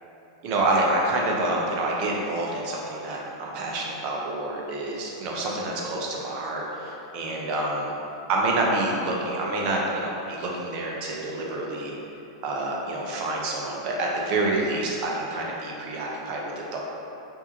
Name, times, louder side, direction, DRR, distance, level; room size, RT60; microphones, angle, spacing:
voice 1, 0.4-7.9 8.3-11.9 12.4-16.8, right 2 dB, 45° right, -2 dB, 0.8 m, -27 dB
5.8 x 2.7 x 2.9 m, 2.9 s
hypercardioid pair, 100°, 2 cm